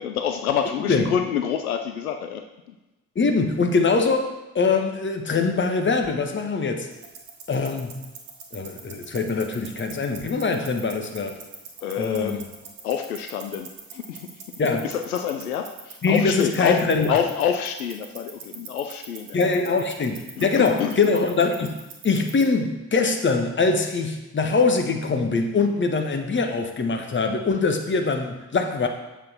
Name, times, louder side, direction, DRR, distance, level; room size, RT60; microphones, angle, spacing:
voice 1, 0.0-2.4 11.8-12.4 12.8-14.3 14.8-19.4 20.4-21.0, left 8 dB, 80° left, 6 dB, 0.6 m, -27 dB
voice 2, 3.1-6.9 7.5-8.0 8.5-11.4 12.0-12.4 14.6-14.8 16.0-17.1 19.3-21.7 22.0-28.9, left 4 dB, 25° left, 4 dB, 1.3 m, -23 dB
sound 1, 6.9-22.5, right 5 dB, 50° right, 1.6 m, -44 dB
8.2 x 7.4 x 4.3 m, 1.0 s
figure-of-eight pair, 45°, 43 cm